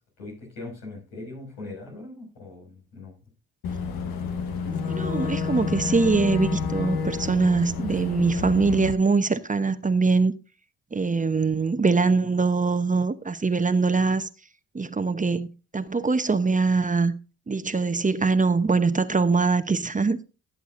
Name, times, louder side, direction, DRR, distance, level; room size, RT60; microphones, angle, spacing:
voice 1, 0.2-3.1, left 2 dB, 85° left, 6.1 m, -40 dB
Boat Water vehicle / Engine, 3.6-8.9, left 5 dB, 70° left, 1.4 m, -29 dB
voice 2, 4.9-10.3 10.9-14.3 14.7-15.5 15.7-17.1 17.5-20.2, right 4 dB, 20° right, 0.9 m, -23 dB
16.0 x 8.1 x 2.6 m
hypercardioid pair, 50°, 38 cm